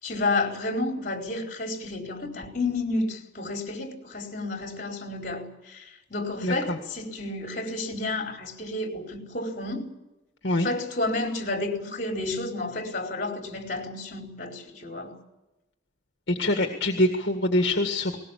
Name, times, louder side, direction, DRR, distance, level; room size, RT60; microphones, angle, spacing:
voice 1, 0.0-9.9 10.5-15.2, left 2 dB, 45° left, 4.6 m, -31 dB
voice 2, 6.4-6.8 10.4-10.7 16.3-18.2, left 1 dB, 60° left, 1.9 m, -24 dB
20.0 x 19.5 x 8.5 m
head